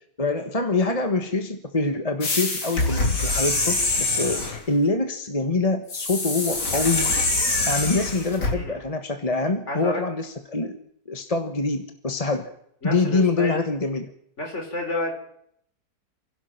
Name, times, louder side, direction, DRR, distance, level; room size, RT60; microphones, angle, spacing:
voice 1, 0.2-7.4 7.7-10.8 11.1-12.5 12.8-14.1, left 3 dB, 20° left, 6 dB, 1.3 m, -25 dB
sound 1, 2.2-4.6 5.9-8.5, left 2 dB, 70° left, 3.9 m, -24 dB
voice 2, 9.7-10.0 12.3-12.4 12.8-13.6 14.4-15.1, left 2 dB, 40° left, 3 dB, 4.2 m, -30 dB
29.0 x 16.5 x 5.9 m, 0.71 s
omnidirectional pair, 1.9 m